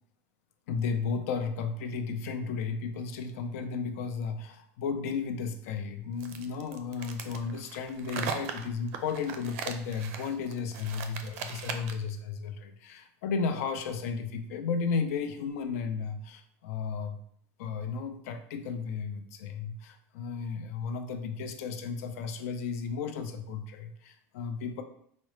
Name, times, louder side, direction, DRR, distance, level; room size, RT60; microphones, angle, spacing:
voice 1, 0.7-17.2 17.6-24.8, left 5 dB, 90° left, 7 dB, 0.4 m, -34 dB
sound 1, 6.2-12.1, right 6 dB, 70° right, 0.4 m, -39 dB
4.7 x 2.0 x 3.0 m, 0.66 s
cardioid pair, 175°, 8 cm